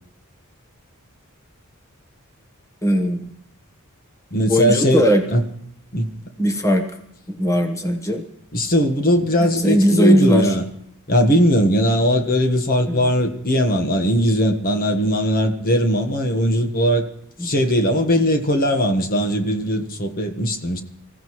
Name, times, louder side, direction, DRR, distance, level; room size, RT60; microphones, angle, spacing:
voice 1, 2.8-3.3 4.5-5.2 6.4-6.8 7.3-8.2 9.4-10.5 12.9-13.0 17.4-17.5, equal, 15° left, 1.2 m, -18 dB
voice 2, 4.3-5.5 5.9-6.1 8.5-10.6 11.1-17.0 17.4-20.8, equal, 45° left, 1.3 m, -19 dB
26.0 x 15.5 x 3.1 m
head